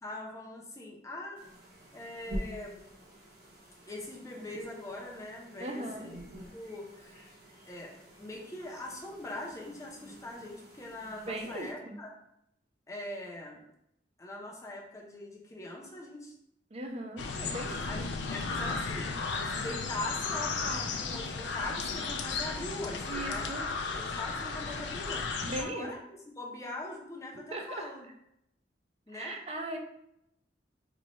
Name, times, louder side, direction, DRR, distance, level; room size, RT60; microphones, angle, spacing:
voice 1, 0.0-1.4 1.9-2.8 3.8-6.2 6.5-7.3 7.6-12.1 12.9-13.6 14.2-16.3 17.3-19.1 19.4-23.7 24.0-26.0 26.3-28.1 29.1-29.4, left 1 dB, 20° left, -2 dB, 0.6 m, -42 dB
sound 1, 1.3-11.7, equal, 55° right, 1.0 m, -47 dB
voice 2, 5.6-6.1 11.3-12.0 16.7-18.1 20.7-21.0 23.1-23.7 25.4-25.9 27.3-27.9 29.1-29.8, right 1 dB, 35° right, 3 dB, 0.5 m, -39 dB
sound 2, 17.2-25.6, left 4 dB, 70° left, 0.4 m, -34 dB
3.0 x 2.3 x 4.1 m, 0.78 s
head